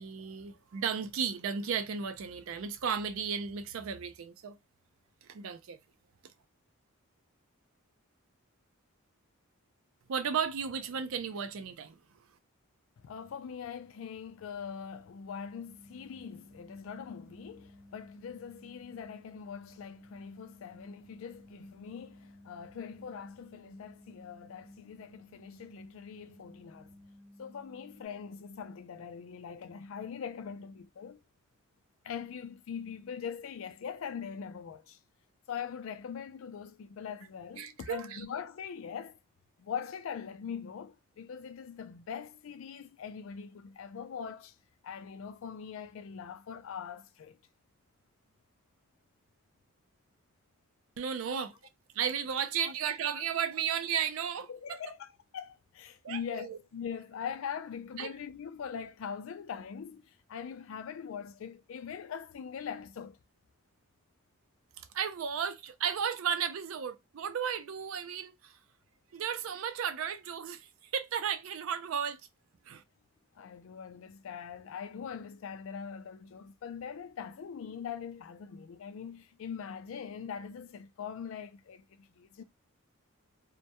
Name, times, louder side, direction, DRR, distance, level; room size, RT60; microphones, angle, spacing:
voice 1, 0.0-4.5 5.2-5.8 10.1-12.0 37.6-38.2 51.0-51.5 51.9-54.8 56.0-56.6 58.0-58.1 64.8-68.6 69.1-72.2 72.7-72.8, right 7 dB, 65° right, 0.4 m, -34 dB
voice 2, 13.0-26.9 27.4-31.2 32.0-35.0 35.5-39.2 39.6-44.5 44.8-47.4 51.3-51.4 52.6-52.7 53.1-53.2 54.5-55.1 55.3-63.2 73.4-82.4, left 7 dB, 65° left, 0.3 m, -42 dB
sound 1, 15.4-28.1, left 1 dB, 20° right, 0.7 m, -56 dB
2.1 x 2.1 x 2.8 m
head